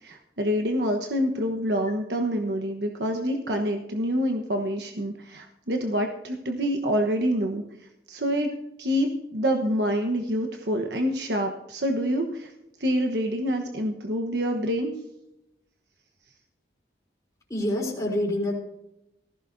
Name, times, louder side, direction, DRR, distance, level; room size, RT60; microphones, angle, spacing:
voice 1, 0.0-7.6 8.1-8.5 8.8-12.5 12.8-14.9, equal, 80° right, 3 dB, 1.2 m, -26 dB
voice 2, 17.5-18.5, left 1 dB, 20° left, -3 dB, 3.8 m, -26 dB
18.0 x 15.5 x 2.7 m, 0.86 s
head